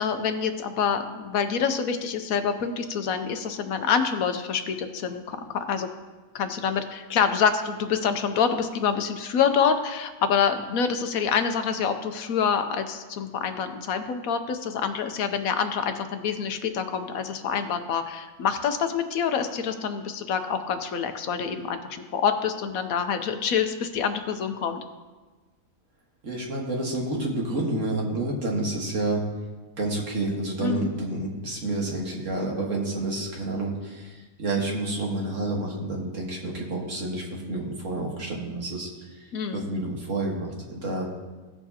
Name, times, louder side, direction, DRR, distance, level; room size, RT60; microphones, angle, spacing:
voice 1, 0.0-5.9 6.3-24.8 30.6-30.9 39.3-39.7, left 7 dB, 70° left, 8 dB, 1.1 m, -26 dB
voice 2, 26.2-29.2 29.8-38.9 39.2-39.3 39.5-41.1, right 2 dB, 55° right, -2 dB, 1.9 m, -29 dB
17.0 x 7.0 x 2.8 m, 1.3 s
omnidirectional pair, 1.6 m